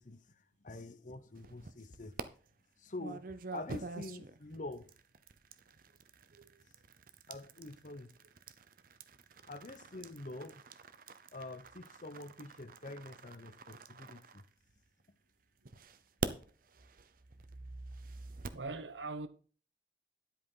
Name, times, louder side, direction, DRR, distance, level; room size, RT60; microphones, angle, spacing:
voice 1, 0.0-2.2 2.8-4.9 7.3-8.1 9.5-10.6 11.3-14.4, left 2 dB, 45° left, 0.9 m, -46 dB
sound 1, 1.4-2.2 3.0-15.0 15.7-18.7, right 3 dB, 50° right, 0.7 m, -46 dB
voice 2, 18.5-19.3, right 3 dB, 75° right, 1.0 m, -42 dB
10.0 x 8.4 x 3.9 m
head